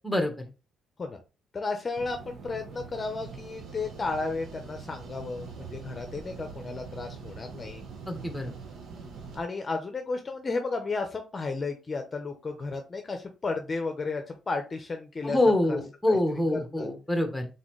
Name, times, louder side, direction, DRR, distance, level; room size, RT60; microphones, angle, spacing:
voice 1, 1.5-7.8 9.3-15.4 15.7-15.8 16.1-16.9, left 3 dB, 35° left, 5 dB, 0.7 m, -33 dB
sound 1, 2.0-9.4, right 5 dB, 65° right, 0.9 m, -43 dB
voice 2, 8.1-8.5 15.2-17.5, left 1 dB, ahead, 4 dB, 1.3 m, -25 dB
4.1 x 3.9 x 3.1 m, 0.31 s
cardioid pair, 90°, 0 cm